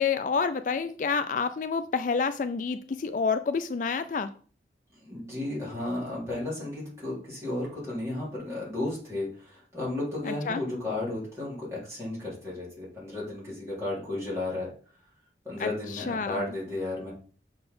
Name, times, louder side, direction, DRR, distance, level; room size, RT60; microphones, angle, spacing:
voice 1, 0.0-4.3 10.2-10.6 15.6-16.4, left 5 dB, 45° left, 11 dB, 0.3 m, -28 dB
voice 2, 4.9-14.7 15.4-17.1, left 2 dB, 15° right, -7 dB, 3.8 m, -33 dB
6.6 x 4.0 x 5.3 m, 0.43 s
head